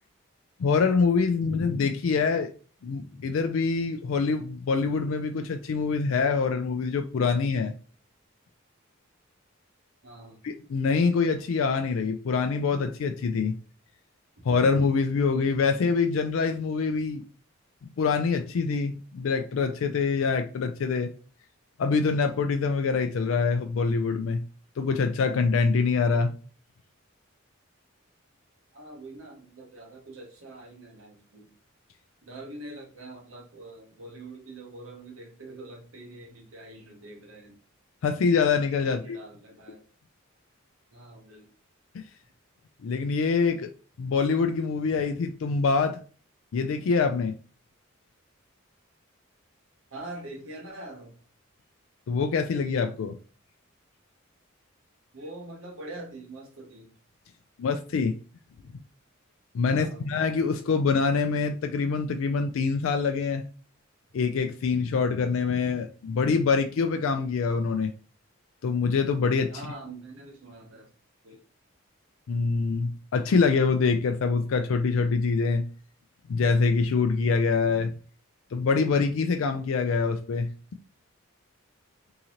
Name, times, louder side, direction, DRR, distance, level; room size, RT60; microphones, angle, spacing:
voice 1, 0.6-2.5 2.8-7.7 10.4-13.5 14.4-17.2 18.0-21.1 21.8-24.4 24.8-26.3 38.0-39.2 41.9-42.0 42.8-43.7 44.0-46.0 46.5-47.4 52.1-53.2 57.6-58.1 59.5-63.4 64.1-67.9 68.6-69.7 72.3-75.7 76.3-77.9 78.5-80.5, left 4 dB, 70° left, 0.4 m, -25 dB
voice 2, 10.0-10.4 28.7-31.5 32.2-37.6 38.8-39.8 40.9-41.5 49.9-51.2 55.1-56.9 59.7-60.1 69.5-70.9 71.2-71.4, right 2 dB, 75° right, 1.0 m, -44 dB
3.7 x 2.8 x 2.9 m
head